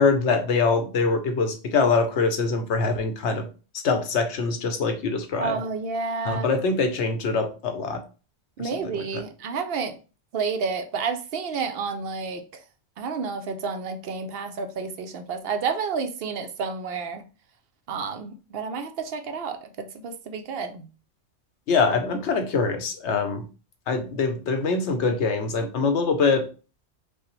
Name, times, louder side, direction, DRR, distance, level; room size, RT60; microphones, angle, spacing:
voice 1, 0.0-3.5 3.8-5.6 6.2-8.0 8.6-8.7 8.9-9.2 21.7-23.5 23.9-26.5, left 4 dB, 80° left, 1.0 m, -24 dB
voice 2, 5.4-6.5 8.6-9.9 10.3-12.6 13.0-17.3 17.9-20.9, right 5 dB, 65° right, 0.7 m, -30 dB
5.3 x 2.1 x 3.0 m
omnidirectional pair, 1.2 m